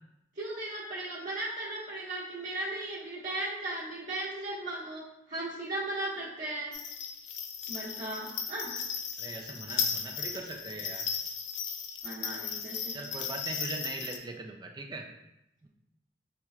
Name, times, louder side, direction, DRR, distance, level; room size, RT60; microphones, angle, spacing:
voice 1, 0.4-6.7 7.7-8.7 12.0-12.9, right 1 dB, 45° right, -9 dB, 1.1 m, -36 dB
sound 1, 6.7-14.2, left 7 dB, 70° left, 0.4 m, -36 dB
voice 2, 9.2-11.1 12.9-15.1 15.6-15.7, right 2 dB, 25° right, 3 dB, 0.3 m, -40 dB
4.5 x 2.9 x 2.3 m, 0.86 s
head